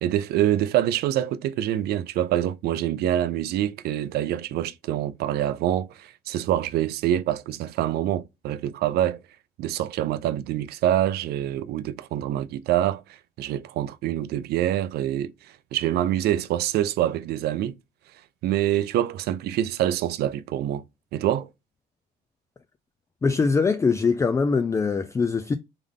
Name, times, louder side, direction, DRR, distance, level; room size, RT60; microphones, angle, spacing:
voice 1, 0.0-9.2 9.6-13.0 13.4-15.3 15.7-17.8 18.4-20.8 21.1-21.5, right 12 dB, 70° right, 0.5 m, -25 dB
voice 2, 23.2-25.6, left 4 dB, 15° left, 0.4 m, -22 dB
3.6 x 3.4 x 3.6 m
cardioid pair, 110°, 17 cm